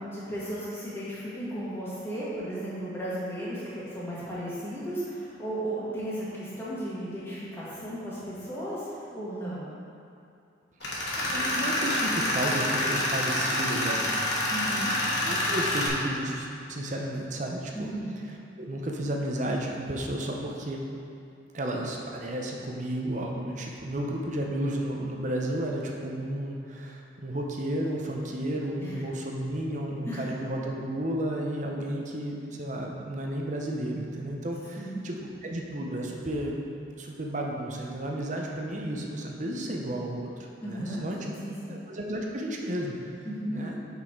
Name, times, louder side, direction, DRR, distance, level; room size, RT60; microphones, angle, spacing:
voice 1, 0.0-9.7 14.5-14.9 17.7-18.1 28.8-29.0 30.1-30.2 34.8-35.0 40.6-41.8 43.2-43.7, right 1 dB, 15° left, -9 dB, 1.7 m, -35 dB
Tools, 10.8-15.9, left 1 dB, 65° left, 1.4 m, -27 dB
voice 2, 10.8-14.1 15.2-17.9 18.6-20.8 21.5-36.6 37.0-41.2 41.7-43.0 43.5-43.7, right 1 dB, 40° right, 0 dB, 0.7 m, -32 dB
6.4 x 5.5 x 4.5 m, 2.5 s
head